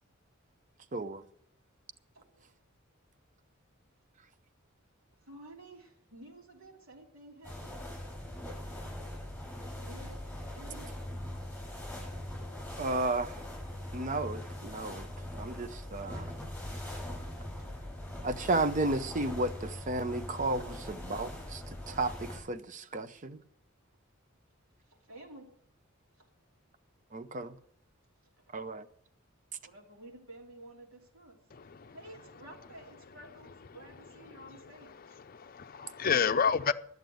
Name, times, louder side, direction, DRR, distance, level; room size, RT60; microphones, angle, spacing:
voice 1, 0.9-1.2 12.8-13.3 13.9-15.1 15.4-16.3 18.2-20.6 21.1-23.4 27.1-27.5 28.5-28.8, right 2 dB, 40° right, 0.7 m, -33 dB
voice 2, 2.1-2.5 5.2-7.8 9.0-9.1 9.7-10.2 10.5-11.0 15.7-15.8 17.6-17.7 24.9-25.5 26.2-26.3 29.6-31.4 31.9-35.2, right 1 dB, 80° right, 3.2 m, -52 dB
sound 1, 7.4-22.4, left 1 dB, 5° left, 7.4 m, -41 dB
voice 3, 35.3-36.7, left 6 dB, 45° left, 0.6 m, -29 dB
11.0 x 8.1 x 9.1 m
head